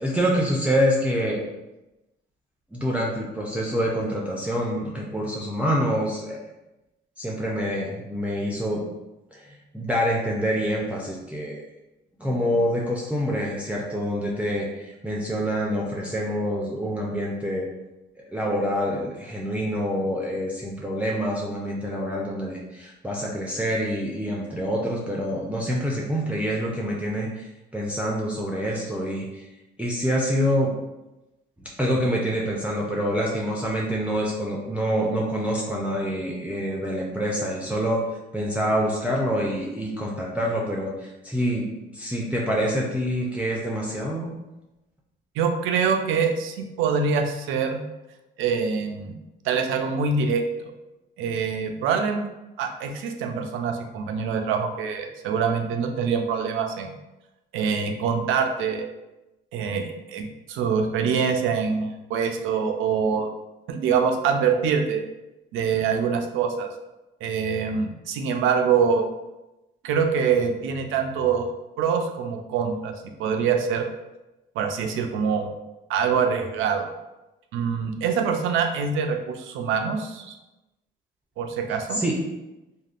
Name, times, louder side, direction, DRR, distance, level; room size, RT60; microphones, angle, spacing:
voice 1, 0.0-1.4 2.7-6.4 7.2-8.8 9.3-11.7 12.2-17.7 18.3-29.5 29.8-30.7 31.6-38.0 38.3-44.3 81.9-82.2, equal, 5° right, -3 dB, 0.4 m, -26 dB
voice 2, 45.4-47.8 48.4-49.1 49.4-50.4 51.2-52.3 52.6-57.0 57.5-58.9 59.5-63.3 63.7-65.0 65.5-66.7 67.2-69.0 69.8-71.5 71.8-72.9 73.2-73.9 74.6-75.5 75.9-76.9 77.5-80.4 81.4-82.0, right 6 dB, 85° right, 5 dB, 0.4 m, -24 dB
3.5 x 2.1 x 2.4 m, 0.99 s
cardioid pair, 90°, 20 cm